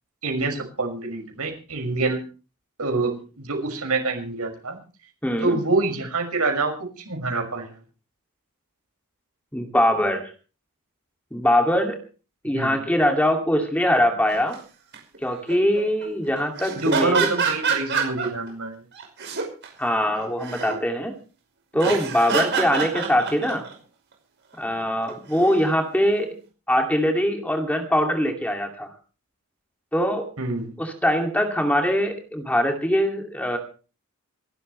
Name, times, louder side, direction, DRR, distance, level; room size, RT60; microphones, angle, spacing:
voice 1, 0.2-2.2 2.8-4.8 5.4-6.7 7.0-7.8 12.5-12.8 16.7-18.8 30.4-30.7, right 3 dB, 85° right, 4 dB, 6.0 m, -26 dB
voice 2, 5.2-5.6 9.5-10.3 11.3-12.0 12.4-14.6 15.2-17.3 19.8-21.1 21.7-23.7 24.6-26.4 26.7-28.9 29.9-30.3 30.8-33.6, equal, 5° left, 3 dB, 2.5 m, -22 dB
sound 1, 14.3-14.5 14.9-15.2 15.5-16.0 16.4-18.5 19.0-19.7 20.1-20.8 21.7-23.7 25.1-25.7, right 5 dB, 55° right, 5.5 m, -27 dB
26.5 x 12.5 x 3.3 m, 0.36 s
head